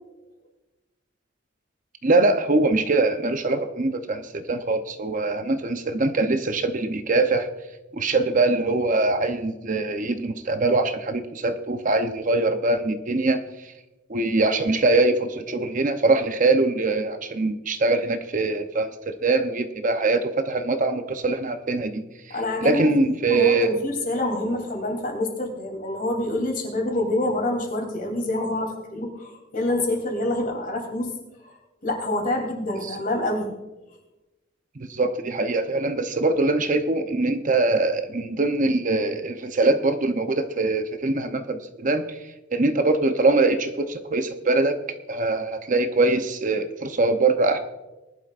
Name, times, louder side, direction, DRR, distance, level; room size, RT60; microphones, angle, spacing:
voice 1, 2.0-7.5 7.9-13.7 14.1-23.8 32.8-32.9 34.8-42.2 42.5-44.8 45.1-47.6, right 2 dB, 45° right, 7 dB, 0.8 m, -23 dB
voice 2, 22.3-22.9 23.2-31.1 31.4-31.6 31.8-33.5, left 1 dB, 45° left, 2 dB, 3.2 m, -27 dB
19.5 x 11.5 x 2.5 m, 1.0 s
head